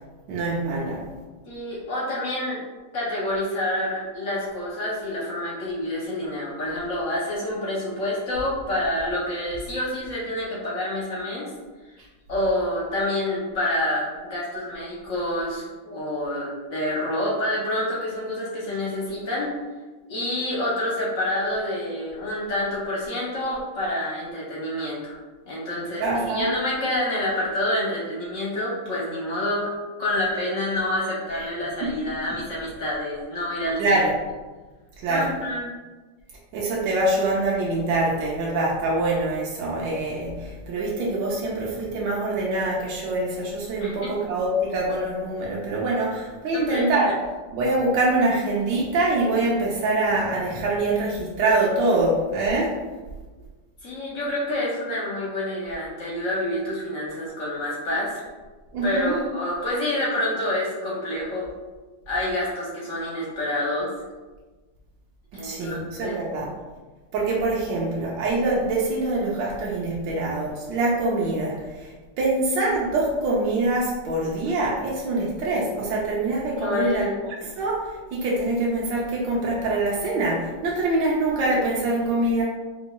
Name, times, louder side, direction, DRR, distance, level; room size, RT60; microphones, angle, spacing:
voice 1, 0.3-1.1 26.0-26.5 31.8-32.0 33.8-34.1 35.0-35.3 36.5-47.1 47.5-52.8 58.7-59.2 65.4-66.5 67.1-71.9 72.2-77.1 77.4-82.4, right 2 dB, 90° right, -4 dB, 1.3 m, -24 dB
voice 2, 1.5-2.6 2.9-11.5 12.3-19.6 20.1-25.2 25.5-29.7 30.0-34.1 35.1-35.7 43.8-44.1 46.5-46.9 53.8-58.3 58.8-61.5 62.1-63.9 65.3-66.2 74.4-74.5 76.6-77.2, left 1 dB, 55° left, -5 dB, 1.0 m, -28 dB
4.4 x 2.9 x 2.2 m, 1.3 s
omnidirectional pair, 2.0 m